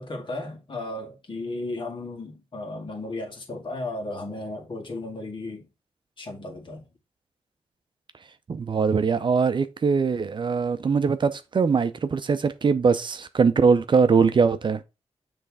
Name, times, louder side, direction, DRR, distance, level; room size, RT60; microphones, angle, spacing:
voice 1, 0.0-5.7 6.2-6.9, left 2 dB, 50° left, 1.9 m, -34 dB
voice 2, 8.5-14.8, right 5 dB, 50° right, 0.5 m, -22 dB
6.9 x 3.3 x 4.8 m
cardioid pair, 80°, 11 cm